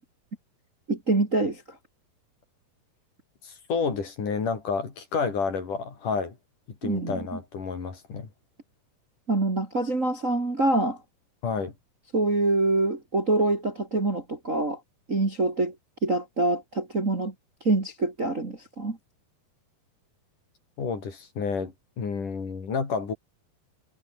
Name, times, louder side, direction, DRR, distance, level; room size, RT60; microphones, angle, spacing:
voice 1, 0.9-1.6 6.8-7.2 9.3-11.0 12.1-14.8 15.1-15.7 16.0-17.3 17.6-19.0, right 2 dB, 20° right, 2.6 m, -25 dB
voice 2, 3.4-6.4 6.7-8.3 11.4-11.7 20.8-23.1, left 5 dB, 55° left, 5.6 m, -30 dB
omnidirectional pair, 4.5 m